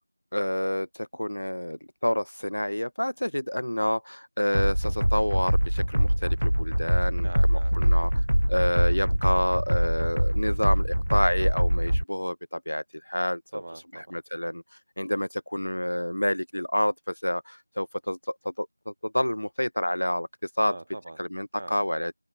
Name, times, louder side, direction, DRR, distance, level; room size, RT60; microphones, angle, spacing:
voice 1, 0.3-8.1 8.5-13.4 14.1-14.6 15.0-20.3 20.6-20.7 21.2-22.1, left 1 dB, 50° left, 0.9 m, -28 dB
sound 1, 4.5-12.0, equal, 75° right, 1.1 m, -24 dB
voice 2, 7.2-7.7 13.5-14.2 20.6-21.2 21.5-21.8, right 1 dB, 15° right, 7.4 m, -42 dB
open air
figure-of-eight pair, 180°, 0 cm